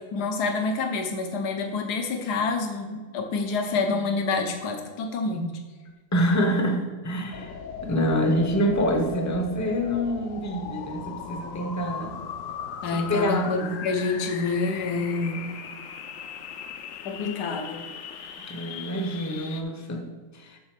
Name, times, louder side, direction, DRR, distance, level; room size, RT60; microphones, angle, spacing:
voice 1, 0.1-5.5 12.8-15.5 17.0-17.8, left 4 dB, 80° left, 4 dB, 1.4 m, -27 dB
voice 2, 6.1-12.1 12.9-13.7 18.4-20.1 20.3-20.6, equal, 15° left, 4 dB, 0.6 m, -26 dB
sound 1, 7.3-19.6, left 7 dB, 65° left, 0.9 m, -38 dB
7.0 x 4.2 x 6.6 m, 1.4 s
omnidirectional pair, 1.7 m